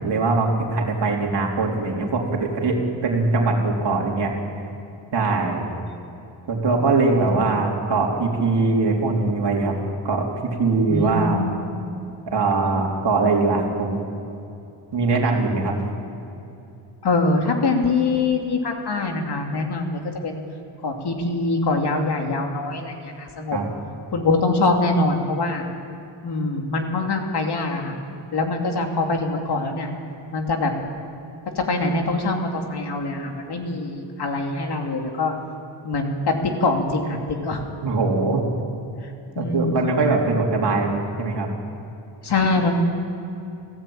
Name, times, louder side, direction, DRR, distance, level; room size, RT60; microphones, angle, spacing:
voice 1, 0.0-4.3 5.1-5.7 6.5-9.8 10.0-11.5 12.3-14.0 14.9-15.8 23.5-23.7 37.8-38.4 39.4-41.5, right 3 dB, 60° right, -1 dB, 3.8 m, -22 dB
voice 2, 10.9-11.6 17.0-20.4 20.8-23.6 24.1-25.6 26.2-28.0 28.3-29.9 30.3-30.7 31.5-35.3 35.8-37.6 39.0-39.1 39.4-39.7 42.2-42.7, left 3 dB, 55° left, 2 dB, 2.8 m, -23 dB
27.5 x 15.5 x 8.9 m, 2.8 s
wide cardioid pair, 175°, 47 cm